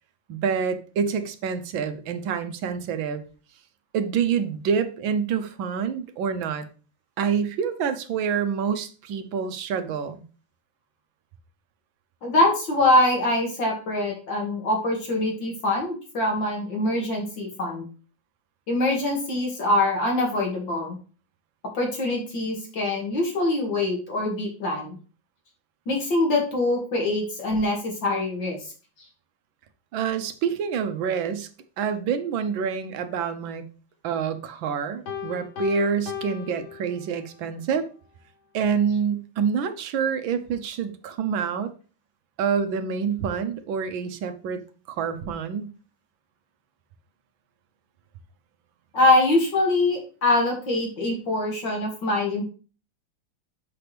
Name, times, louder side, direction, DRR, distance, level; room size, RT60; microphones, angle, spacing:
voice 1, 0.3-3.2 3.9-6.6 7.2-10.2 29.9-31.5 31.8-33.6 34.0-37.9 38.5-41.7 42.4-44.6 44.9-45.7, right 6 dB, 90° right, 10 dB, 1.6 m, -27 dB
voice 2, 12.2-17.8 18.7-21.0 21.7-25.0 25.9-28.6 48.9-52.4, left 2 dB, 70° left, 0 dB, 2.7 m, -24 dB
Piano, 35.1-37.5, left 8 dB, 90° left, 1.9 m, -36 dB
7.1 x 6.0 x 3.3 m, 0.37 s
omnidirectional pair, 2.1 m